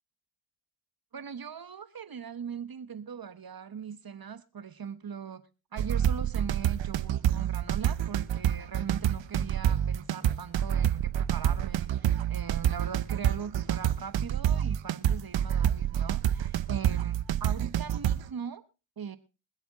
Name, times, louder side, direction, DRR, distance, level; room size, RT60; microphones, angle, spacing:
voice 1, 1.1-5.4 5.7-18.6 19.0-19.2, right 7 dB, 45° right, 1.2 m, -40 dB
sound 1, 5.8-18.3, right 10 dB, 65° right, 0.8 m, -27 dB
22.5 x 8.0 x 3.7 m
cardioid pair, 55°, 49 cm